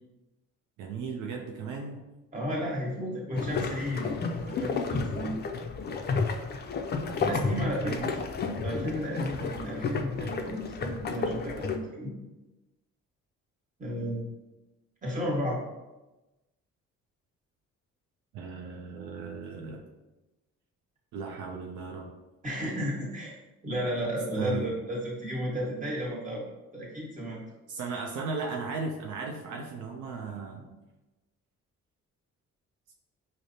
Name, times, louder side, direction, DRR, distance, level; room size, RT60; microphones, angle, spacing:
voice 1, 0.8-2.0 7.1-8.1 18.3-19.8 21.1-22.1 24.4-24.7 27.7-30.7, right 4 dB, 80° right, 1 dB, 0.5 m, -36 dB
voice 2, 2.3-4.1 4.5-5.3 7.2-8.0 8.6-12.1 13.8-14.3 15.0-15.6 22.4-23.4 23.6-26.4 26.7-27.4, equal, 25° right, -4 dB, 1.3 m, -33 dB
sound 1, 3.4-11.8, left 4 dB, 35° left, 0.4 m, -32 dB
4.9 x 2.1 x 2.6 m, 1.1 s
cardioid pair, 90°, 30 cm